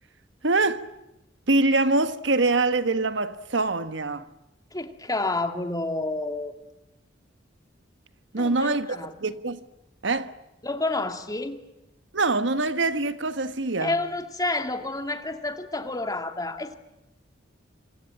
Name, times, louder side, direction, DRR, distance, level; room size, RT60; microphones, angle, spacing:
voice 1, 0.4-0.9 1.5-4.3 8.3-8.9 9.2-9.6 10.0-10.3 12.1-14.0, right 3 dB, 70° right, 1.4 m, -24 dB
voice 2, 4.7-6.5 8.4-9.1 10.6-11.6 13.8-16.8, left 2 dB, 20° left, 2.3 m, -29 dB
26.0 x 26.0 x 8.9 m
head